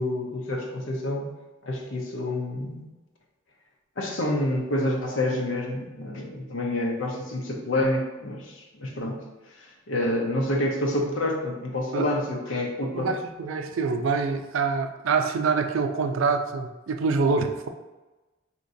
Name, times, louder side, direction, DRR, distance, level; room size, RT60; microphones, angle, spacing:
voice 1, 0.0-1.3 1.6-2.9 4.0-9.2 9.6-13.1, left 1 dB, 75° left, 0 dB, 0.8 m, -28 dB
voice 2, 12.9-17.7, right 4 dB, 80° right, 6 dB, 0.4 m, -25 dB
5.1 x 2.9 x 2.6 m, 1.1 s
head